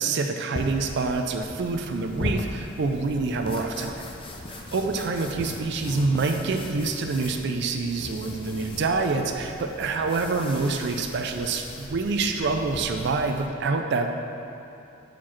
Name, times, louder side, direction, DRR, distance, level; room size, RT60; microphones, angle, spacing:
voice 1, 0.0-4.0 4.5-14.1, right 3 dB, 60° right, 5 dB, 0.4 m, -26 dB
sound 1, 0.6-13.5, left 1 dB, 25° left, 0.5 m, -38 dB
4.7 x 4.6 x 5.7 m, 2.8 s
head